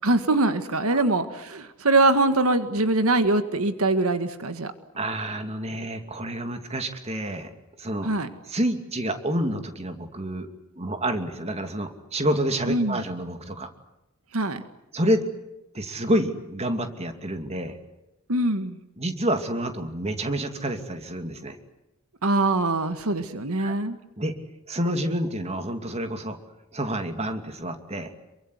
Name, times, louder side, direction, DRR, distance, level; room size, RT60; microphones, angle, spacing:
voice 1, 0.0-4.7 8.0-8.3 12.7-13.0 14.3-14.6 18.3-18.8 22.2-23.9, right 2 dB, 80° right, 9 dB, 1.8 m, -23 dB
voice 2, 5.0-7.5 7.8-8.1 8.4-10.5 10.7-13.7 14.9-15.2 15.7-17.8 19.0-21.6 23.6-23.7 24.2-24.3 24.7-26.4 26.7-28.1, right 1 dB, 30° right, 6 dB, 2.6 m, -28 dB
28.0 x 23.5 x 8.1 m, 0.94 s
head